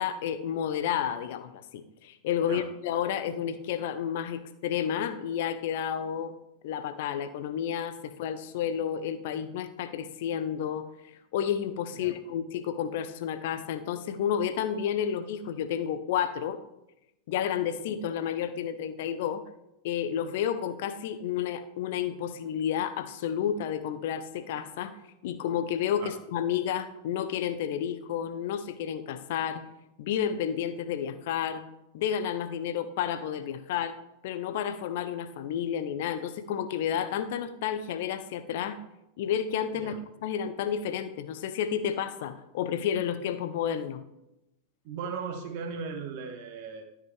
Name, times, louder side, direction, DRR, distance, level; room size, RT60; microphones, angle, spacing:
voice 1, 0.0-6.3 6.6-10.9 11.3-16.6 17.3-19.4 19.8-25.0 25.2-29.6 30.0-31.6 31.9-34.0 34.2-38.8 39.2-44.0, left 9 dB, 50° left, 11 dB, 0.8 m, -31 dB
voice 2, 44.8-46.8, right 5 dB, 50° right, 5 dB, 1.4 m, -37 dB
13.0 x 6.0 x 3.3 m, 0.88 s
figure-of-eight pair, 90°, 0 cm